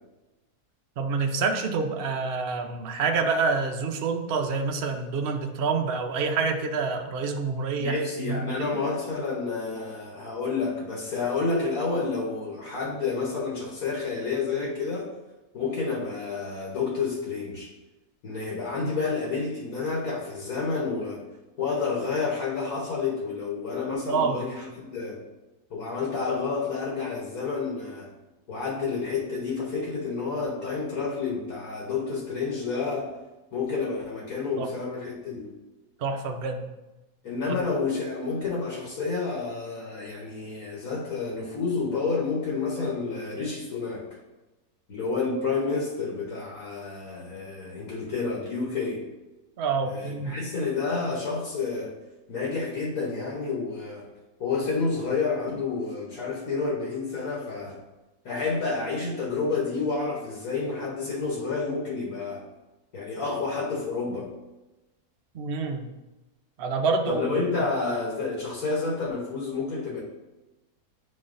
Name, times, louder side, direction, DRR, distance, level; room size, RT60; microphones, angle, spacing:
voice 1, 1.0-8.7 24.1-24.4 34.6-34.7 36.0-36.7 37.5-37.6 49.6-50.4 65.3-65.9 66.6-67.3, right 4 dB, 70° right, 4 dB, 0.5 m, -27 dB
voice 2, 7.8-15.1 15.5-17.7 18.2-21.2 21.6-25.2 25.7-28.1 28.5-33.1 33.5-35.5 37.2-44.1 44.9-49.0 49.9-51.9 52.3-54.1 54.4-57.8 58.2-62.4 62.9-64.3 67.1-70.0, left 4 dB, 65° left, -3 dB, 1.5 m, -29 dB
9.8 x 4.1 x 2.5 m, 1.1 s
omnidirectional pair, 1.7 m